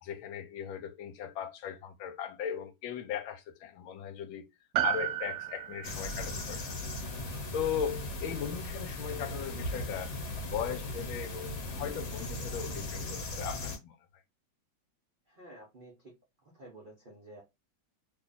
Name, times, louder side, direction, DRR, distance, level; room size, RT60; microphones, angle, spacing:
voice 1, 0.0-4.4 4.8-6.6 7.5-10.1 10.4-14.0, left 8 dB, 85° left, 1.4 m, -38 dB
Piano, 4.7-9.4 9.6-9.7, right 12 dB, 75° right, 1.3 m, -36 dB
sound 1, 5.8-13.8, left 1 dB, 60° left, 1.4 m, -38 dB
voice 2, 15.3-16.1 16.4-17.4, right 1 dB, 60° right, 0.5 m, -51 dB
3.1 x 2.4 x 3.9 m
omnidirectional pair, 2.2 m